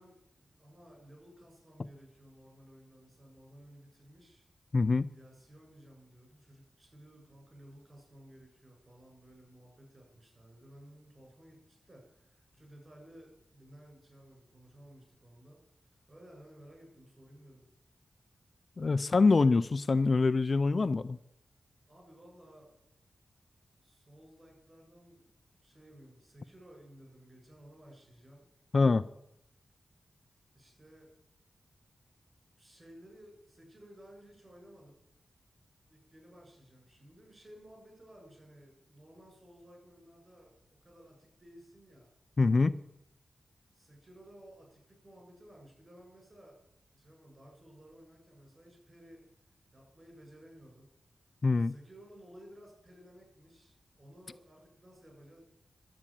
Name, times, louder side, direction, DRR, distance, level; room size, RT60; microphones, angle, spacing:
voice 1, 0.0-4.5 5.1-17.7 21.9-22.7 23.8-25.3 25.6-28.5 30.5-31.1 32.6-35.0 35.9-42.1 43.7-46.6 46.9-49.2 49.7-50.9 51.6-55.4, equal, 30° right, 1 dB, 7.4 m, -56 dB
voice 2, 4.7-5.1 18.8-21.2 28.7-29.0 42.4-42.7 51.4-51.7, left 3 dB, 45° left, 13 dB, 0.4 m, -25 dB
12.0 x 8.6 x 8.9 m, 0.79 s
wide cardioid pair, 100°, 0 cm